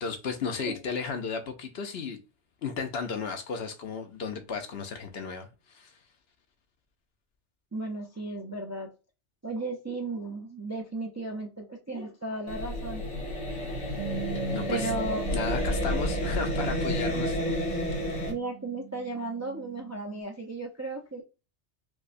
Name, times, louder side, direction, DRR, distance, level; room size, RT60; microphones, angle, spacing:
voice 1, 0.0-2.2 2.6-5.9 14.5-14.9 15.3-17.8, left 5 dB, 65° left, 0.9 m, -34 dB
voice 2, 7.7-8.9 9.4-13.0 14.7-15.4 18.3-21.2, right 2 dB, 25° right, 0.3 m, -35 dB
sound 1, 12.5-18.3, left 1 dB, 85° left, 1.5 m, -30 dB
Bass guitar, 14.0-20.2, right 23 dB, 85° right, 0.9 m, -41 dB
4.7 x 2.1 x 2.5 m
omnidirectional pair, 1.2 m